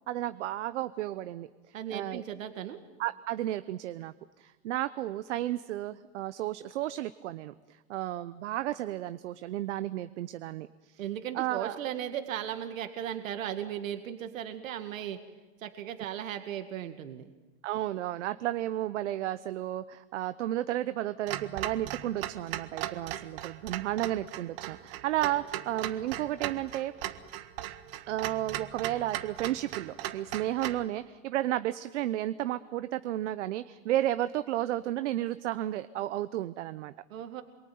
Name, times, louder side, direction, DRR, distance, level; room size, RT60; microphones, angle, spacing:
voice 1, 0.1-2.2 3.0-11.0 11.3-11.8 17.6-26.9 28.1-36.9, right 14 dB, 60° right, 13 dB, 0.9 m, -33 dB
voice 2, 1.7-2.8 11.0-15.2 15.6-17.3 37.1-37.4, right 10 dB, 85° right, 8 dB, 2.1 m, -36 dB
Clock, 21.3-30.8, right 12 dB, 45° right, 1.4 m, -38 dB
27.5 x 23.0 x 9.4 m, 1.2 s
supercardioid pair, 170°, 39 cm